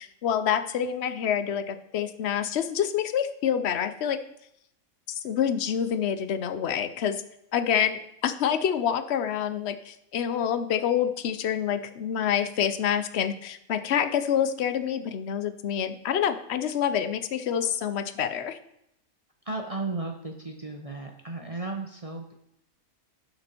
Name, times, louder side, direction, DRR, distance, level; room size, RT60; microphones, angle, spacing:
voice 1, 0.0-4.2 5.1-7.2 7.5-18.6, left 9 dB, 55° left, 11 dB, 0.9 m, -27 dB
voice 2, 19.4-22.3, right 3 dB, 30° right, 2 dB, 0.8 m, -34 dB
11.5 x 6.1 x 4.4 m, 0.78 s
omnidirectional pair, 1.5 m